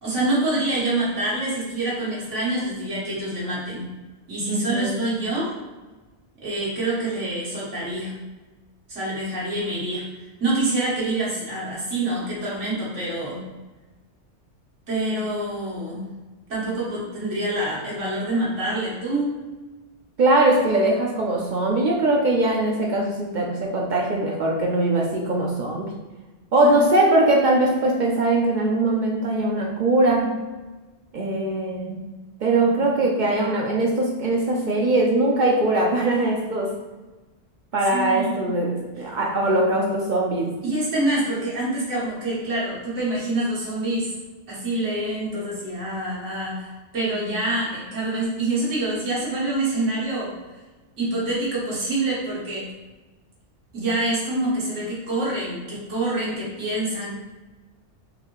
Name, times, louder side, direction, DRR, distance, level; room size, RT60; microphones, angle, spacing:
voice 1, 0.0-3.9 4.3-5.5 6.4-8.2 8.9-13.4 14.9-16.1 16.5-19.3 26.6-26.9 37.9-38.5 40.6-44.1 44.5-50.3 51.0-52.7 53.7-57.1, right 2 dB, 90° right, -7 dB, 1.7 m, -26 dB
voice 2, 4.5-5.0 20.2-25.9 26.5-30.3 31.1-32.1 32.4-36.7 37.7-40.6, right 2 dB, 60° right, -1 dB, 0.5 m, -21 dB
4.0 x 2.7 x 3.0 m, 1.2 s
omnidirectional pair, 1.2 m